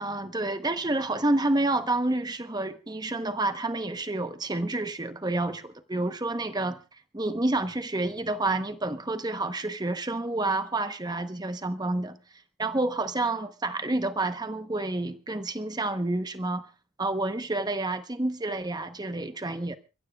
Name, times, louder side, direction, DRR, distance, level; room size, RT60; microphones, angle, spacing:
voice 1, 0.0-6.8 7.1-12.2 12.6-16.6 17.0-19.8, right 2 dB, 20° right, 0.8 m, -29 dB
29.0 x 15.0 x 2.3 m
head